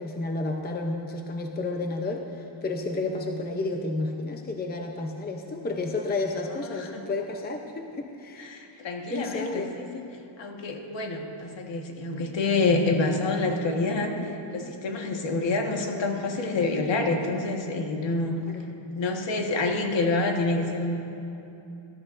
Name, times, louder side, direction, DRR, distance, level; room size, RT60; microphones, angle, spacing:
voice 1, 0.0-8.8 9.1-9.7 18.5-18.7, left 2 dB, 20° left, 3 dB, 0.6 m, -31 dB
voice 2, 6.6-7.0 8.4-10.0 10.4-18.4 18.9-21.0, left 3 dB, 65° left, 2 dB, 1.6 m, -27 dB
19.0 x 13.0 x 2.6 m, 2.8 s
wide cardioid pair, 140°, 48 cm